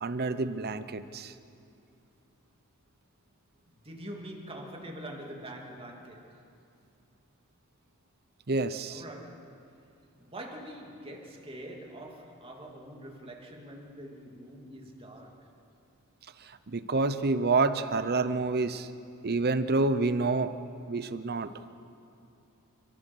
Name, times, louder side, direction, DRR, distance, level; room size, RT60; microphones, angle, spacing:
voice 1, 0.0-1.3 8.5-9.0 16.7-18.9 19.2-20.5 20.9-21.5, right 3 dB, 45° right, 12 dB, 0.8 m, -28 dB
voice 2, 3.6-6.5 8.9-9.6 10.2-15.5, right 1 dB, 25° right, 0 dB, 2.8 m, -44 dB
29.5 x 15.0 x 6.3 m, 2.6 s
head